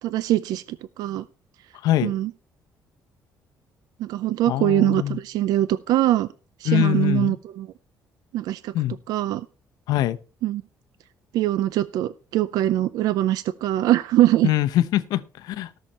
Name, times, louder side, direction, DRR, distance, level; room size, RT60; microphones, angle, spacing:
voice 1, 0.0-1.2 2.0-2.3 4.0-6.3 6.6-7.7 8.3-8.7 9.1-9.5 10.4-10.6 11.3-14.5, right 14 dB, 75° right, 16 dB, 0.5 m, -22 dB
voice 2, 1.8-2.1 4.5-5.2 6.6-7.3 8.7-9.0 9.9-10.2 14.4-15.8, left 14 dB, 90° left, 13 dB, 0.8 m, -23 dB
18.0 x 6.5 x 4.3 m, 0.35 s
cardioid pair, 165°, 7 cm